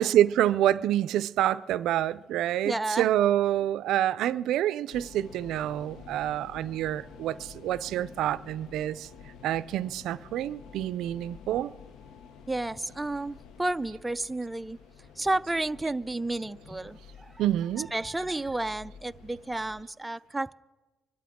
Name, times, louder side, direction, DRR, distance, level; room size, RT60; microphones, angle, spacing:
voice 1, 0.0-9.1 9.4-11.7 17.4-17.9, right 12 dB, 85° right, 0.4 m, -27 dB
voice 2, 2.6-3.1 12.5-14.8 15.2-17.0 17.9-20.5, right 2 dB, 10° right, 0.4 m, -31 dB
sound 1, 4.9-19.8, left 6 dB, 85° left, 0.7 m, -50 dB
25.0 x 12.5 x 3.6 m
cardioid pair, 90°, 0 cm